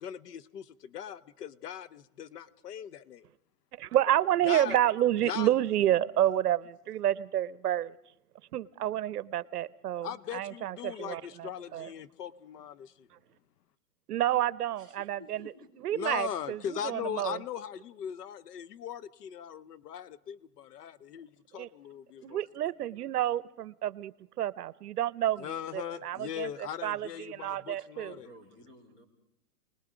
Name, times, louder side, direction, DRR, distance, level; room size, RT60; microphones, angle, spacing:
voice 1, 0.0-3.3 4.4-4.8 5.2-5.5 10.0-13.1 15.9-22.4 25.4-28.3, left 9 dB, 85° left, 18 dB, 0.9 m, -39 dB
voice 2, 3.8-7.9 8.5-11.9 14.1-15.4 15.8-17.4 21.6-21.7 22.2-24.1 24.4-25.5 25.7-26.5 26.8-28.1, right 12 dB, 75° right, 19 dB, 0.8 m, -29 dB
voice 3, 14.8-15.7 28.0-29.1, left 1 dB, 25° left, 2 dB, 2.9 m, -53 dB
28.0 x 20.0 x 5.0 m, 0.78 s
hypercardioid pair, 175°, 46 cm